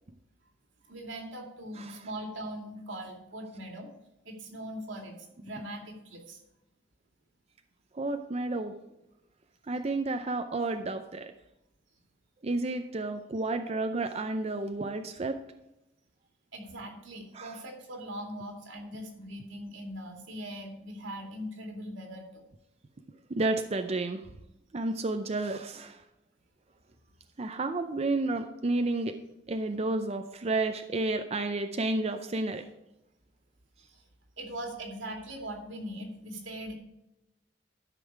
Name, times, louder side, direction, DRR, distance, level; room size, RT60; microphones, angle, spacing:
voice 1, 0.8-3.9 4.2-6.4 16.5-22.4 33.8-34.1 34.4-36.7, right 1 dB, 90° right, 1 dB, 2.4 m, -41 dB
voice 2, 7.9-8.7 9.7-11.3 12.4-15.4 17.3-17.5 23.3-24.3 24.7-26.0 27.4-29.1 29.5-32.6, right 2 dB, 35° right, 7 dB, 0.5 m, -31 dB
13.0 x 5.5 x 4.6 m, 0.89 s
head